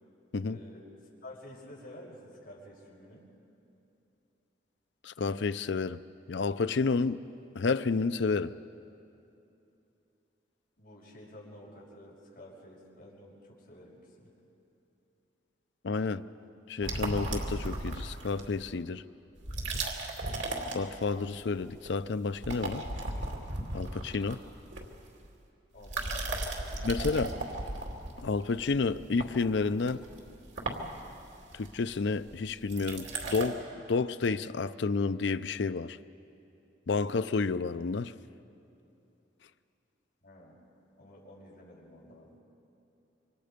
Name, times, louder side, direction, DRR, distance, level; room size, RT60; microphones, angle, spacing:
voice 1, 0.4-0.9 1.2-3.2 10.8-14.3 25.7-27.4 40.2-40.6 41.0-42.4, left 1 dB, 55° left, 5.7 m, -51 dB
voice 2, 5.0-6.0 6.3-7.2 7.5-8.5 15.8-16.2 16.7-19.0 20.7-22.8 23.7-24.4 26.8-27.3 28.2-30.0 31.5-33.6 33.9-36.0 36.9-38.1, left 4 dB, 75° left, 0.5 m, -30 dB
sound 1, 16.8-18.6 19.4-21.3 21.6-22.0 22.3-25.3 25.8-33.5, right 2 dB, 85° right, 2.6 m, -36 dB
26.5 x 25.0 x 5.2 m
head